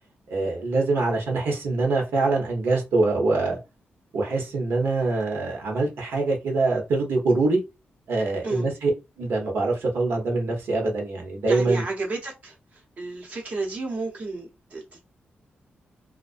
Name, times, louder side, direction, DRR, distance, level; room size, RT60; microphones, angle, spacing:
voice 1, 0.3-3.6 4.1-7.6 8.1-8.9 9.2-11.8, right 3 dB, 90° right, 0.9 m, -24 dB
voice 2, 11.5-15.0, right 3 dB, 45° right, 0.8 m, -31 dB
2.4 x 2.1 x 2.4 m
wide cardioid pair, 150°, 4 cm